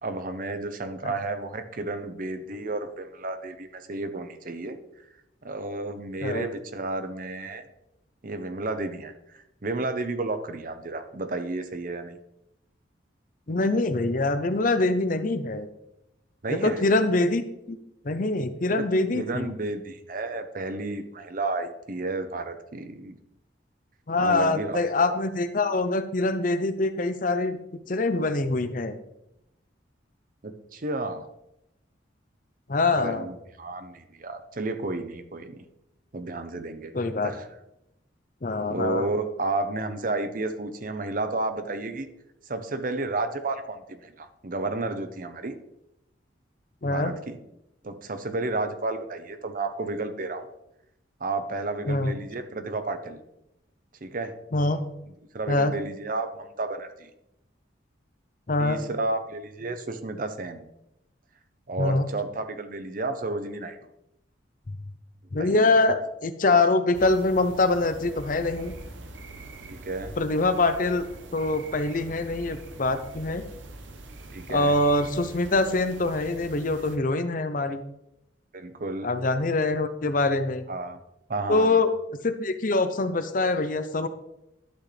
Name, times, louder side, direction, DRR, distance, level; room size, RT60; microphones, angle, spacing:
voice 1, 0.0-4.8 5.4-7.6 8.2-12.2 16.4-16.8 18.7-18.8 19.1-23.2 24.2-24.8 30.4-31.3 33.0-35.6 36.1-36.9 37.2-37.5 38.7-42.1 42.5-45.5 46.9-47.4 47.8-50.5 51.2-53.2 54.0-54.3 55.3-57.1 58.6-60.6 61.7-63.8 65.4-65.8 69.7-70.1 74.3-74.8 78.5-79.1 80.7-81.0 81.3-81.8, right 2 dB, 45° right, 9 dB, 0.7 m, -32 dB
voice 2, 13.5-15.7 16.5-17.4 17.7-17.8 18.0-19.5 24.1-27.6 27.9-29.0 32.7-33.3 36.9-37.3 38.4-39.0 46.8-47.1 51.9-52.1 54.5-54.8 55.5-55.7 58.5-58.8 61.8-62.1 65.3-68.7 70.2-71.1 71.3-73.4 74.5-77.8 79.0-80.6 81.5-81.9 82.2-84.1, left 2 dB, 45° left, 10 dB, 0.6 m, -24 dB
sound 1, 66.9-77.0, right 2 dB, 85° right, 1.0 m, -43 dB
11.5 x 6.3 x 3.3 m, 0.84 s
head